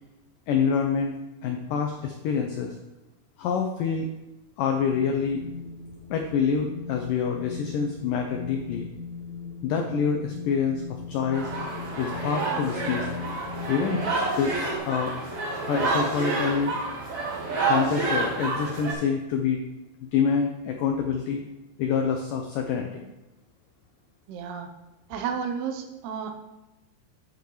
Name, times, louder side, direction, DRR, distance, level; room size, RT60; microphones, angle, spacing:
voice 1, 0.5-1.2 1.4-2.7 3.4-4.1 4.6-5.4 6.1-8.9 9.6-11.5 12.0-13.1 13.7-15.1 15.7-16.7 17.7-19.6 20.0-21.4 21.8-23.1, left 6 dB, 85° left, 3 dB, 1.9 m, -26 dB
Wind, 4.8-14.8, left 5 dB, 65° left, 3.6 m, -40 dB
sound 1, 11.3-18.9, right 3 dB, 55° right, 2.6 m, -29 dB
voice 2, 24.3-24.7 25.1-26.3, right 7 dB, 80° right, 5 dB, 2.8 m, -32 dB
8.6 x 8.0 x 3.1 m, 1.0 s
omnidirectional pair, 4.7 m